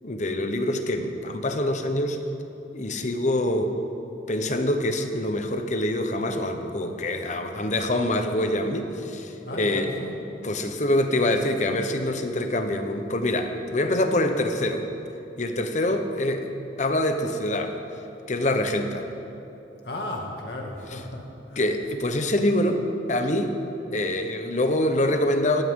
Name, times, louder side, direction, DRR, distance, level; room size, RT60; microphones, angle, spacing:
voice 1, 0.0-2.2 2.7-3.8 4.3-9.9 10.4-14.9 15.4-16.5 16.8-17.8 18.3-19.1 21.6-23.6 23.9-25.6, left 1 dB, 45° left, 6 dB, 0.9 m, -25 dB
voice 2, 9.4-10.2 19.8-21.7, left 1 dB, 65° left, 0 dB, 2.2 m, -34 dB
17.0 x 14.5 x 3.8 m, 2.9 s
head